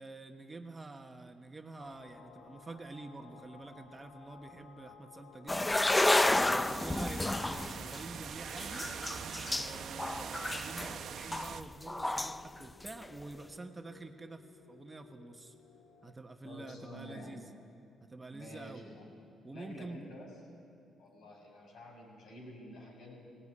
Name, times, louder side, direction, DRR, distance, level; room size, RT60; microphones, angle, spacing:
voice 1, 0.0-5.8 6.4-8.8 9.4-15.5 16.0-17.4 18.0-18.8 19.4-20.0, right 2 dB, 20° right, 5 dB, 1.4 m, -47 dB
sound 1, 1.8-16.1, left 6 dB, 85° left, 1.4 m, -58 dB
sound 2, 5.5-12.5 12.9-13.1, left 2 dB, 15° left, 0.5 m, -31 dB
sound 3, 5.9-11.6, right 8 dB, 65° right, 0.9 m, -44 dB
voice 2, 16.4-17.3 18.3-19.1 19.5-20.3 21.0-23.2, left 1 dB, 65° left, 0 dB, 7.1 m, -49 dB
18.0 x 17.0 x 9.9 m, 2.7 s
cardioid pair, 90°, 0 cm